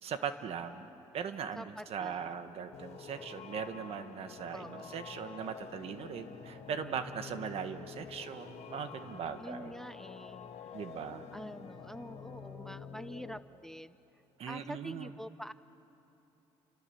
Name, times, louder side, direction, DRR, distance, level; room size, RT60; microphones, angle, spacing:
voice 1, 0.0-9.7 10.7-11.2 14.4-15.1, right 7 dB, 65° right, 9 dB, 1.5 m, -40 dB
voice 2, 1.6-2.4 4.5-5.1 9.4-10.5 11.3-13.9 14.5-15.5, equal, 5° left, 14 dB, 0.5 m, -46 dB
sound 1, 2.7-13.4, left 6 dB, 70° left, 1.6 m, -48 dB
29.5 x 25.5 x 7.2 m, 2.9 s
cardioid pair, 100°, 11 cm